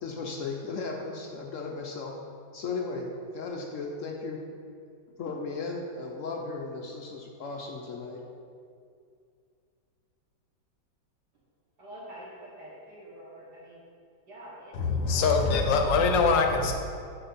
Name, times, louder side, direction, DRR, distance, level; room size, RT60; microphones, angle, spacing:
voice 1, 0.0-2.1 2.5-3.1 3.3-4.4 5.2-8.2, left 4 dB, 70° left, 1 dB, 0.7 m, -36 dB
voice 2, 11.8-13.8 14.3-14.8 15.0-15.3 15.7-15.8, right 1 dB, 65° right, -8 dB, 2.6 m, -46 dB
voice 3, 14.7-16.7, left 4 dB, 90° left, 4 dB, 1.5 m, -23 dB
7.8 x 5.0 x 4.0 m, 2.4 s
omnidirectional pair, 1.9 m